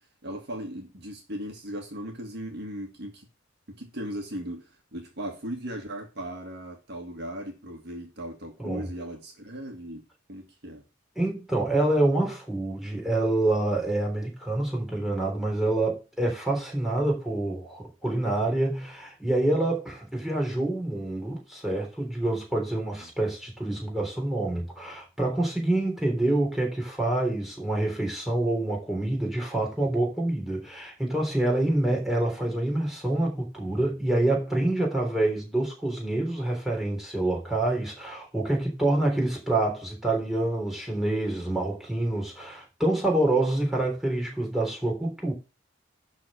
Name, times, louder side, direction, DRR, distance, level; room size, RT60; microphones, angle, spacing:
voice 1, 0.2-3.3 3.7-10.8 23.0-23.1, equal, 55° right, 1.8 m, -38 dB
voice 2, 11.2-45.3, right 2 dB, ahead, 3.4 m, -27 dB
12.0 x 4.1 x 6.3 m
head